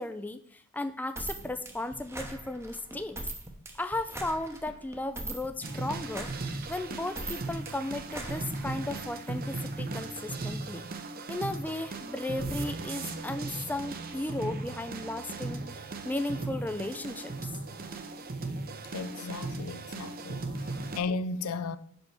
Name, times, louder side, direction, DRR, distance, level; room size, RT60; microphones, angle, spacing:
voice 1, 0.0-3.2 3.7-6.3 6.7-10.9 11.3-17.5, left 2 dB, 10° left, 0.3 m, -35 dB
sound 1, 1.2-9.0, right 2 dB, 10° right, 0.8 m, -41 dB
sound 2, 5.6-21.0, right 3 dB, 45° right, 0.7 m, -37 dB
voice 2, 18.9-20.5 21.0-21.8, left 4 dB, 80° left, 0.5 m, -34 dB
5.6 x 5.4 x 6.0 m
head